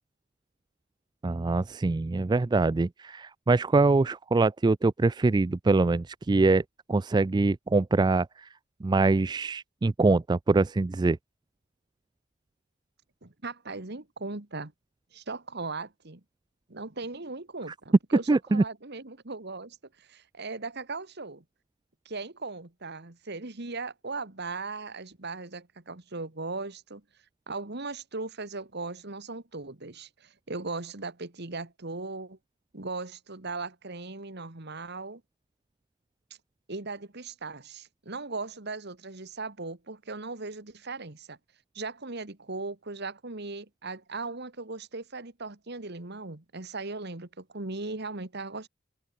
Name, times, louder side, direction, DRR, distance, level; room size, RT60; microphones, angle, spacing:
voice 1, 1.2-6.6 6.9-8.5 8.8-11.2 18.3-18.6, right 3 dB, 20° right, 0.3 m, -24 dB
voice 2, 13.2-14.7 15.1-16.2 16.7-21.4 22.1-27.0 27.5-32.4 32.7-35.2 36.7-41.4 41.7-48.7, right 3 dB, 55° right, 1.9 m, -38 dB
head